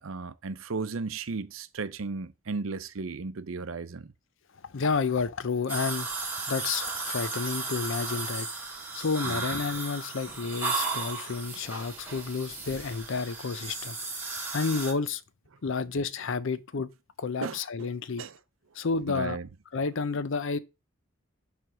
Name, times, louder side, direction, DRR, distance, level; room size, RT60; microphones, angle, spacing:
voice 1, 0.0-4.1 9.2-9.4 17.4-17.9 18.2-18.4 19.1-19.5, right 4 dB, 70° right, 0.6 m, -35 dB
voice 2, 4.7-6.1 6.5-8.5 8.9-14.0 14.5-15.2 15.6-16.9 17.2-18.2 18.8-19.4 19.7-20.6, left 4 dB, 65° left, 0.6 m, -30 dB
sound 1, 5.7-14.9, right 4 dB, 10° right, 2.2 m, -35 dB
7.6 x 3.4 x 6.0 m
head